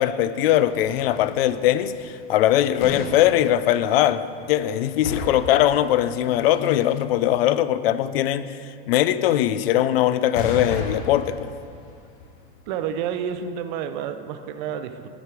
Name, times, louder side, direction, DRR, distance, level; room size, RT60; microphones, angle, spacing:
voice 1, 0.0-8.5 8.9-11.5, left 12 dB, 75° left, 0.5 m, -21 dB
sound 1, 0.6-4.7 5.0-6.1 10.3-13.4, left 3 dB, 50° left, 1.0 m, -35 dB
voice 2, 12.7-15.1, right 8 dB, 50° right, 0.5 m, -29 dB
10.0 x 5.1 x 4.5 m
supercardioid pair, 155°, 30 cm